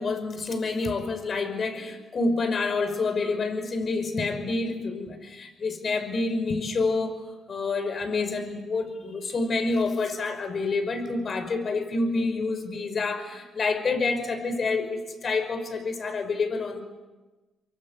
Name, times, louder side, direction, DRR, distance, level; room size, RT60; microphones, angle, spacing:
voice 1, 0.0-7.2 7.5-16.8, left 3 dB, 45° left, 8 dB, 5.4 m, -28 dB
24.5 x 24.0 x 8.3 m, 1.2 s
cardioid pair, 90°, 0 cm